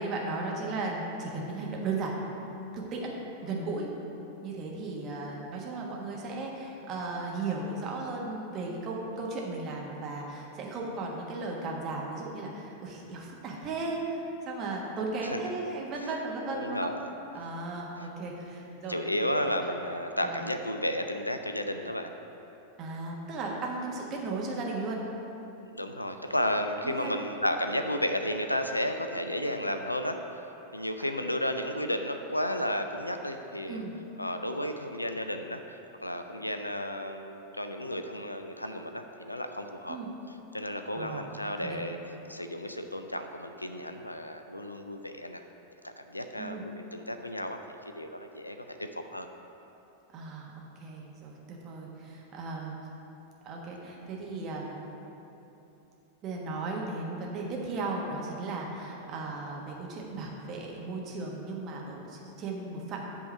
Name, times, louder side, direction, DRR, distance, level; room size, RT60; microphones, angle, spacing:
voice 1, 0.0-2.1 2.7-3.2 3.4-3.9 4.4-16.9 17.3-19.0 19.6-19.7 20.2-20.4 22.8-25.0 26.8-27.1 31.0-31.2 33.7-33.9 39.9-40.1 40.9-41.3 41.6-41.8 46.4-46.7 50.1-52.7 53.4-54.8 56.2-63.1, right 3 dB, 35° right, -2 dB, 1.3 m, -36 dB
voice 2, 16.5-17.1 18.9-22.1 25.7-33.8 34.2-40.0 40.5-42.0 42.3-45.4 45.8-49.3, left 1 dB, 85° left, 7 dB, 0.4 m, -33 dB
8.5 x 3.6 x 6.6 m, 3.0 s
figure-of-eight pair, 90°, 0 cm